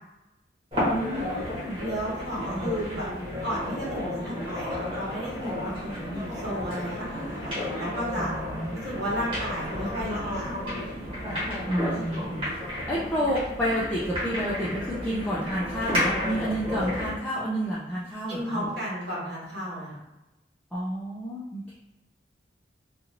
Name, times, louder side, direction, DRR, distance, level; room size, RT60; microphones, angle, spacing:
sound 1, 0.7-17.2, left 1 dB, 30° right, 1.2 m, -32 dB
voice 1, 0.9-1.8 2.6-2.7 3.3-3.4 8.2-8.8 11.7-18.8 20.7-21.8, equal, 5° left, -9 dB, 0.3 m, -30 dB
voice 2, 1.8-3.1 3.4-8.3 8.7-10.5 18.3-20.0, equal, 60° right, -6 dB, 1.2 m, -33 dB
2.6 x 2.5 x 2.8 m, 0.97 s
head